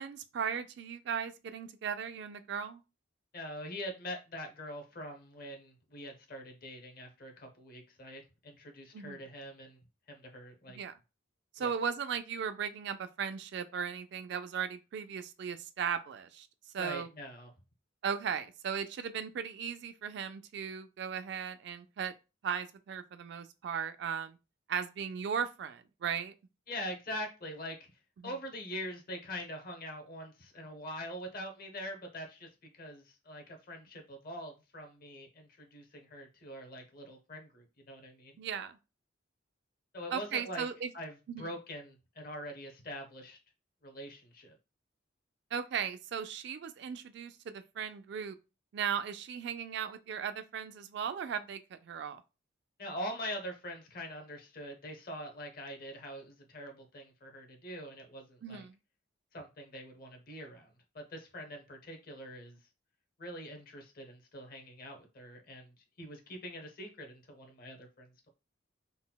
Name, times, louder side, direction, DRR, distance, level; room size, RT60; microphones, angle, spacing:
voice 1, 0.0-2.8 8.9-9.2 10.8-10.9 11.6-16.5 16.7-17.1 18.0-22.1 22.4-24.4 24.7-26.3 28.2-28.3 38.4-38.8 40.1-40.9 41.3-41.5 45.5-48.4 48.7-52.2 58.4-58.8, right 7 dB, 60° right, 0.3 m, -37 dB
voice 2, 3.3-9.8 10.1-10.8 11.6-11.7 16.8-17.5 26.7-27.9 28.2-32.5 32.7-38.4 39.9-40.7 40.9-43.4 43.8-44.6 52.8-58.7 59.3-62.6 63.2-68.3, equal, 50° left, 0.8 m, -44 dB
3.9 x 2.1 x 2.2 m
head